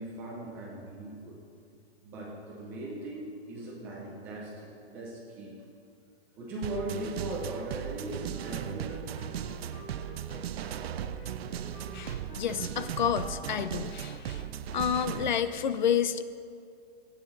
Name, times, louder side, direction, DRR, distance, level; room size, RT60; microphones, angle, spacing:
voice 1, 0.0-1.4 2.0-5.6 6.4-9.1, right 1 dB, 5° right, -3 dB, 0.4 m, -39 dB
sound 1, 6.6-15.4, right 10 dB, 75° right, 0.6 m, -37 dB
Wind instrument woodwind instrument, 8.3-14.3, left 2 dB, 65° left, 2.2 m, -51 dB
voice 2, 11.9-14.4 14.7-16.2, left 8 dB, 50° left, 12 dB, 0.5 m, -30 dB
15.0 x 8.8 x 3.9 m, 2.3 s
hypercardioid pair, 165°, 31 cm